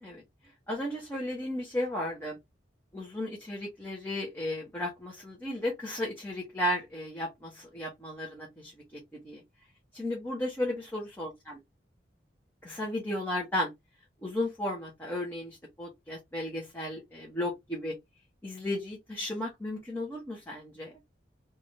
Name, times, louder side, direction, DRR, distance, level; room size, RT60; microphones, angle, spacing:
voice 1, 0.7-2.4 2.9-9.0 9.2-9.4 9.9-11.6 12.6-13.7 14.2-18.0 18.4-20.9, left 1 dB, 10° left, 1.1 m, -34 dB
3.6 x 2.6 x 3.2 m
head